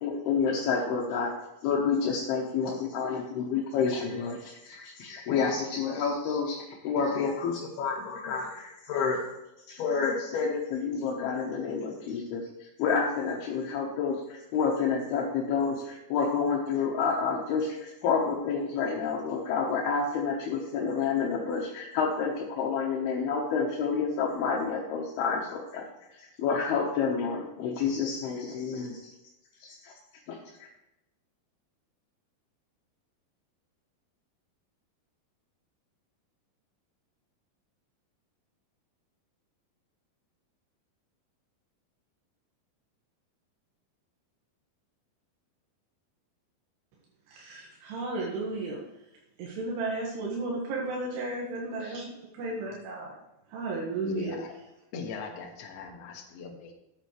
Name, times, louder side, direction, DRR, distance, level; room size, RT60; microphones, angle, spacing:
voice 1, 0.0-1.3 1.6-9.2 9.7-12.4 12.8-25.8 26.2-29.1 29.6-29.9 30.3-30.7, left 5 dB, 80° left, -2 dB, 3.1 m, -29 dB
voice 2, 47.3-48.8 49.4-53.2 53.5-54.4, right 2 dB, 85° right, -3 dB, 3.6 m, -33 dB
voice 3, 54.0-54.5 54.9-56.7, left 5 dB, 60° left, 2 dB, 1.8 m, -41 dB
13.0 x 9.1 x 3.2 m, 0.91 s
omnidirectional pair, 4.6 m